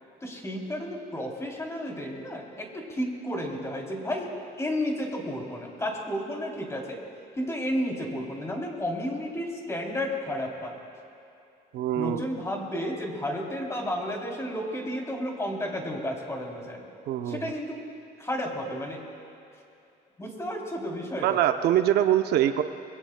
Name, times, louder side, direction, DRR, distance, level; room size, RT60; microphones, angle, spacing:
voice 1, 0.2-7.0 7.4-10.7 12.0-16.8 17.2-17.8 18.2-19.0 20.2-21.4, equal, 15° left, -1 dB, 3.2 m, -32 dB
voice 2, 11.7-12.2 17.1-17.5 21.2-22.6, right 11 dB, 75° right, 7 dB, 0.7 m, -23 dB
26.5 x 21.5 x 2.3 m, 2.7 s
cardioid pair, 110°, 17 cm